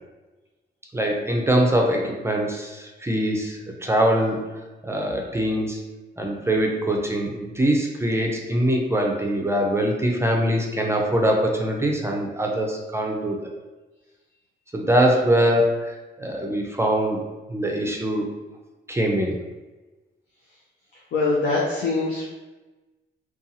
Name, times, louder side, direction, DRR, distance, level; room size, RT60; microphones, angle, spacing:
voice 1, 0.9-4.4 4.8-5.8 6.2-13.5 14.7-17.2 17.5-18.3 18.9-19.4, right 1 dB, 15° right, 0 dB, 0.4 m, -23 dB
voice 2, 21.1-22.3, left 3 dB, 80° left, -4 dB, 0.6 m, -23 dB
2.7 x 2.3 x 2.6 m, 1.1 s
cardioid pair, 90°, 19 cm